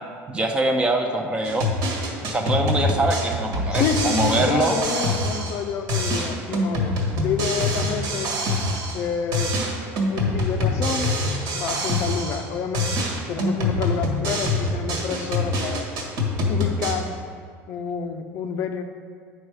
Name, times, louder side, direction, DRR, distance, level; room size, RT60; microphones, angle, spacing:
voice 1, 0.3-1.7 2.2-4.7, right 2 dB, 15° right, 4 dB, 0.6 m, -23 dB
sound 1, 1.4-5.6 5.9-9.1 9.3-12.5 12.7-16.9, left 1 dB, 70° right, 1.7 m, -25 dB
voice 2, 3.7-8.4 8.9-9.6 10.1-11.1 11.5-13.0 13.3-15.9 16.5-17.1 17.7-18.8, left 6 dB, 45° left, 6 dB, 0.5 m, -28 dB
9.4 x 5.5 x 4.8 m, 2.1 s
cardioid pair, 155°, 6 cm